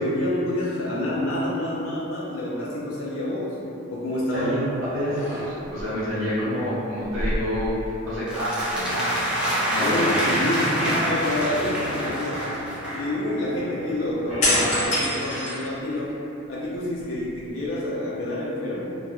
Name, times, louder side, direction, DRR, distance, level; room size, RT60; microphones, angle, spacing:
voice 1, 0.0-3.6 3.9-4.5 9.8-10.7 11.1-12.5 12.9-16.1 16.5-19.0, left 1 dB, 75° left, -7 dB, 0.4 m, -28 dB
sound 1, 4.3-4.6 5.0-5.8 7.0-8.3 8.6-8.8 14.4-16.2 16.7-17.6, left 1 dB, 35° left, 0.8 m, -27 dB
voice 2, 4.3-7.8 8.1-8.6 8.9-9.1 9.4-10.9, equal, 70° right, -11 dB, 0.9 m, -28 dB
sound 2, 8.3-13.1, equal, 5° right, 0.4 m, -26 dB
sound 3, 8.7-14.9, equal, 40° right, 0.9 m, -36 dB
2.2 x 2.2 x 3.0 m, 2.7 s
head